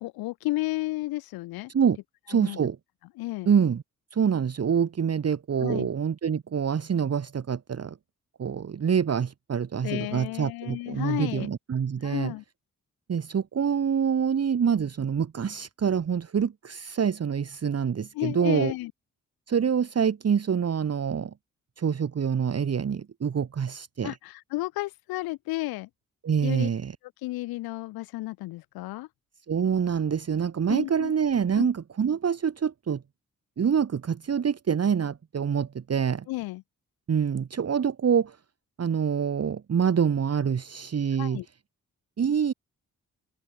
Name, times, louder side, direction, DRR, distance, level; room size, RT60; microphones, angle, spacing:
voice 1, 0.0-1.7 2.3-2.6 3.2-3.5 5.6-5.9 9.8-11.5 12.0-12.4 18.1-18.9 24.0-25.9 26.4-26.7 27.2-29.1 30.7-31.1 31.5-31.7 36.3-36.6 41.2-41.4, left 19 dB, 90° left, 1.5 m, -32 dB
voice 2, 2.3-2.8 3.5-3.8 4.1-8.0 8.4-12.3 13.1-18.7 19.5-21.3 21.8-24.2 26.2-26.9 29.5-33.0 33.6-36.3 37.1-38.4 38.8-41.4 42.2-42.5, right 7 dB, 45° right, 1.2 m, -26 dB
open air
supercardioid pair, 45°, 35 cm